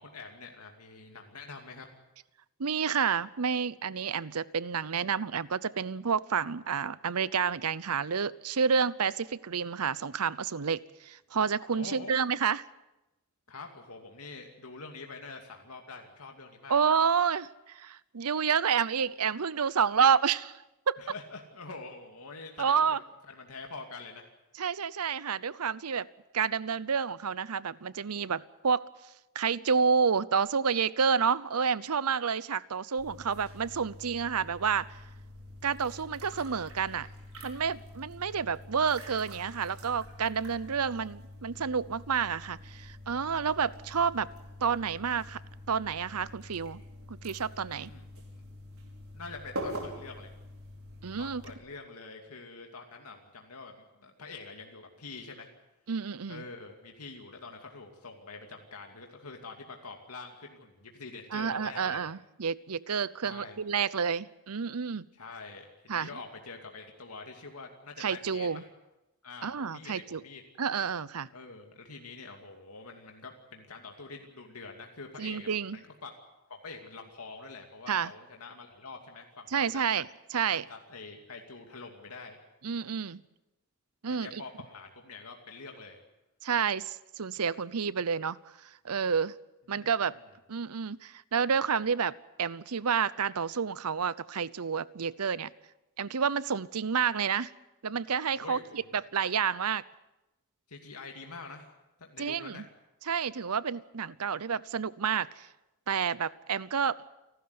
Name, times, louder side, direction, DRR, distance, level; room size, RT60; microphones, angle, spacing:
voice 1, 0.0-1.9 11.7-12.1 13.5-16.8 21.0-22.9 23.3-24.2 47.7-48.0 48.3-48.4 49.1-50.3 51.2-53.7 54.0-55.5 56.3-62.0 63.2-63.6 65.2-68.6 69.2-70.4 71.3-76.1 76.5-79.8 80.7-82.4 84.1-86.0 89.7-89.9 98.3-98.8 100.7-101.7 102.0-102.6, left 4 dB, 85° left, 3 dB, 2.5 m, -45 dB
voice 2, 2.6-12.6 16.7-21.0 22.6-23.0 24.6-26.1 26.3-28.9 29.3-35.0 35.6-37.1 37.4-44.3 44.6-45.4 45.7-46.8 47.1-47.9 51.0-51.4 55.9-56.4 61.3-65.1 65.9-66.1 68.0-68.6 69.4-70.2 70.6-71.3 75.2-75.8 77.9-78.1 79.5-80.7 82.6-83.2 84.0-84.4 86.4-88.4 88.8-89.3 89.7-90.2 90.5-95.5 96.0-97.5 97.8-99.8 102.2-102.6 103.1-105.5 105.9-107.0, right 6 dB, 90° right, 19 dB, 0.7 m, -29 dB
sound 1, 33.0-51.5, equal, 70° right, 5.6 m, -45 dB
29.0 x 12.5 x 9.6 m, 0.96 s
head